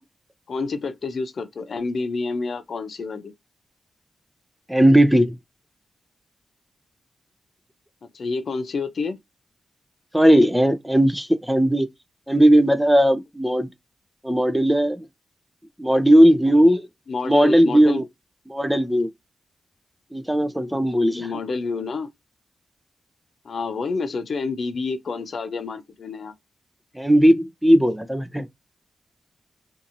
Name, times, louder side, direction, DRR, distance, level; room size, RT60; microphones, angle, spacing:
voice 1, 0.5-3.3 8.1-9.2 17.1-18.0 21.1-22.1 23.4-26.3, left 4 dB, 65° left, 0.6 m, -28 dB
voice 2, 4.7-5.3 10.1-11.9 12.3-13.7 14.2-15.0 15.8-16.9 17.2-18.1 18.5-19.1 20.1-21.3 27.0-28.5, equal, 5° right, 0.5 m, -17 dB
2.7 x 2.6 x 2.5 m
cardioid pair, 50°, 0 cm